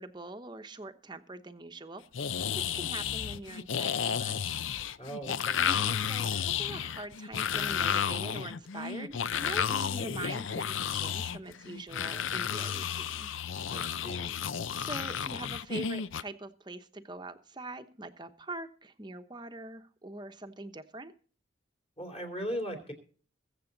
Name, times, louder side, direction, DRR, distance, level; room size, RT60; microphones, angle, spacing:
voice 1, 0.0-2.0 2.6-4.6 5.6-13.3 14.8-21.1, right 2 dB, 20° right, 8 dB, 0.9 m, -43 dB
sound 1, 2.1-16.2, left 8 dB, 75° left, 0.5 m, -32 dB
voice 2, 5.0-5.6 13.7-14.4 22.0-22.9, equal, 30° left, 4 dB, 3.2 m, -38 dB
22.0 x 7.6 x 4.0 m, 0.43 s
head